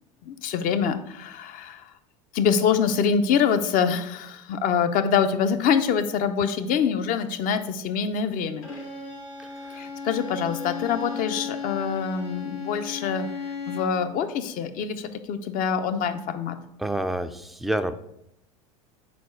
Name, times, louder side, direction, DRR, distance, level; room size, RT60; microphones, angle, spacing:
voice 1, 0.2-1.9 2.3-8.7 9.7-13.3 13.7-16.6, left 7 dB, 50° left, 9 dB, 0.7 m, -25 dB
Bowed string instrument, 8.6-14.1, left 5 dB, 85° left, 1.8 m, -35 dB
voice 2, 9.4-9.8 16.8-17.9, right 1 dB, ahead, 10 dB, 0.4 m, -29 dB
4.3 x 4.3 x 5.7 m, 0.79 s
hypercardioid pair, 85°, 18 cm